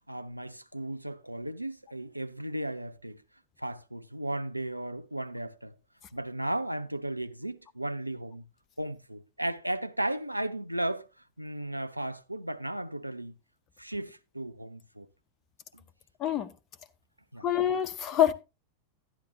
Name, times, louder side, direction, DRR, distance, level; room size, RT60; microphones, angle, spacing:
voice 1, 0.1-3.2 3.6-5.7 6.1-8.4 8.8-11.1 11.4-13.3 13.8-15.1 15.7-15.8 17.3-17.5, right 1 dB, 85° right, 0.6 m, -35 dB
voice 2, 16.2-16.5 17.4-18.3, left 10 dB, 30° left, 0.7 m, -25 dB
12.0 x 9.8 x 2.7 m
figure-of-eight pair, 90°, 0 cm